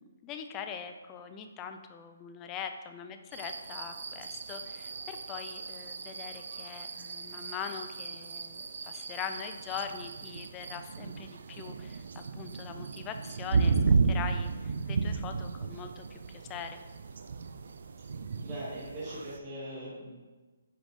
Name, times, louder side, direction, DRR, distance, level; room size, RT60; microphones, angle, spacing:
voice 1, 0.0-16.8, left 7 dB, 15° left, 7 dB, 0.5 m, -42 dB
sound 1, 3.3-19.4, right 4 dB, 60° right, 0.5 m, -34 dB
voice 2, 18.4-20.2, right 1 dB, 20° right, -9 dB, 2.8 m, -40 dB
10.0 x 6.2 x 3.7 m, 1.3 s
hypercardioid pair, 175°, 0 cm